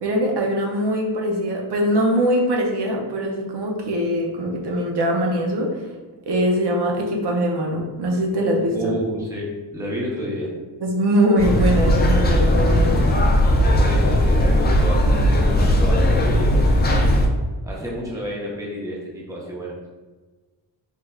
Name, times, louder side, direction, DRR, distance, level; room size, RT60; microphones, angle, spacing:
voice 1, 0.0-5.8 6.3-8.9 10.8-13.0, equal, 65° right, 0 dB, 0.6 m, -22 dB
voice 2, 8.7-10.5 13.7-15.3 15.6-16.9 17.6-19.8, equal, 5° right, -3 dB, 0.6 m, -30 dB
sound 1, 11.4-17.3, equal, 25° left, 0.3 m, -17 dB
3.4 x 3.1 x 2.3 m, 1.3 s
wide cardioid pair, 140°, 44 cm